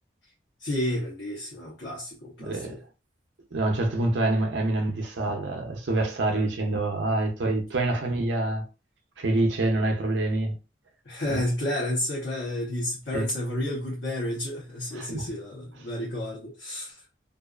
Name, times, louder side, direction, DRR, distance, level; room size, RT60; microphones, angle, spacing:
voice 1, 0.6-2.8 11.0-17.0, left 1 dB, 80° left, 0.9 m, -31 dB
voice 2, 2.4-2.8 3.5-8.7 9.2-10.6 11.3-11.4 13.1-13.3 14.9-15.2, right 2 dB, 75° right, 0.6 m, -26 dB
2.5 x 2.3 x 2.3 m
head